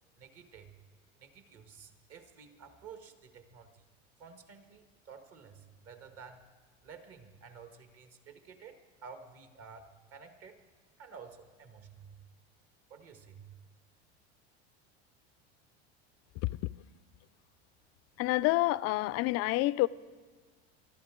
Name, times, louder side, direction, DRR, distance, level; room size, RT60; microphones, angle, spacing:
voice 1, 0.2-0.8 1.2-3.8 4.2-6.4 6.8-10.6 11.0-12.2 12.9-13.5, right 6 dB, 45° right, 1.8 m, -52 dB
voice 2, 18.2-19.9, left 19 dB, 50° left, 0.4 m, -28 dB
24.0 x 13.0 x 3.8 m
supercardioid pair, 95°, 32 cm